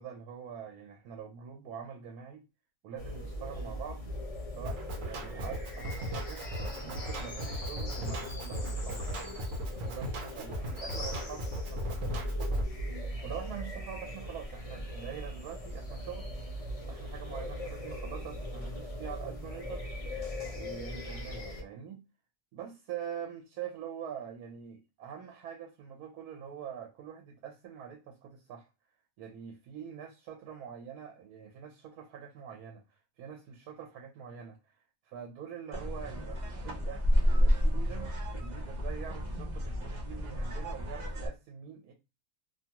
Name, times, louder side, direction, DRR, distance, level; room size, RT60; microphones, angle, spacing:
voice 1, 0.0-2.4 2.8-4.0 4.5-6.4 6.8-9.4 9.7-12.9 13.2-16.3 16.9-19.8 20.5-22.0 22.5-28.7 29.2-41.9, right 8 dB, 90° right, 1.1 m, -44 dB
sound 1, 3.0-21.6, equal, 60° left, 0.3 m, -39 dB
Drum kit, 4.6-12.6, equal, 65° right, 1.0 m, -38 dB
sound 2, 35.7-41.3, equal, 40° right, 0.6 m, -30 dB
2.7 x 2.3 x 2.8 m
omnidirectional pair, 1.6 m